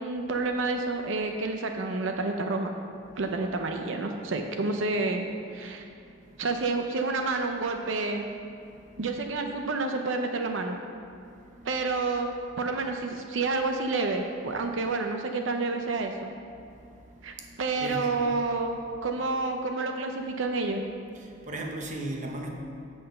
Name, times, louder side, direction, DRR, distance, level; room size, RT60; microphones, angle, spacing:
voice 1, 0.0-2.7 3.2-5.3 5.5-5.8 6.4-8.3 9.0-10.8 11.6-12.3 12.6-16.3 17.2-20.8, right 3 dB, 85° right, 0.6 m, -29 dB
voice 2, 6.0-6.4 8.6-9.0 11.1-11.7 16.5-18.2 21.1-22.5, right 1 dB, 40° right, 1.0 m, -40 dB
7.8 x 5.8 x 6.6 m
head